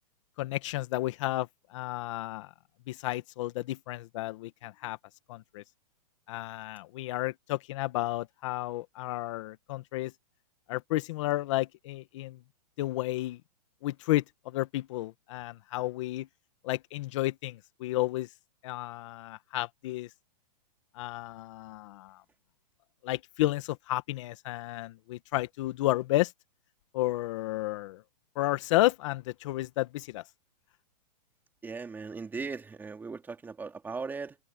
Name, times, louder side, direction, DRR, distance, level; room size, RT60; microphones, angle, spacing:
voice 1, 0.4-2.5 2.9-5.0 5.3-5.6 6.3-10.1 10.7-12.4 12.8-13.4 13.8-16.3 16.6-18.3 18.6-20.1 20.9-22.2 23.0-26.3 26.9-28.0 28.3-30.2, left 17 dB, 45° left, 1.6 m, -32 dB
voice 2, 31.6-34.4, right 4 dB, 10° right, 2.7 m, -38 dB
hypercardioid pair, 150°, 21 cm